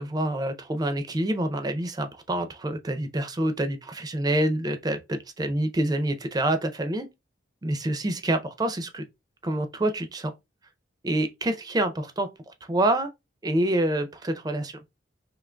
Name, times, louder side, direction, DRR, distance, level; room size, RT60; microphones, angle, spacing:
voice 1, 0.0-7.1 7.6-9.0 9.4-10.3 11.0-12.3 12.7-13.1 13.4-14.8, right 1 dB, 20° right, 0.4 m, -27 dB
3.7 x 2.8 x 2.2 m
head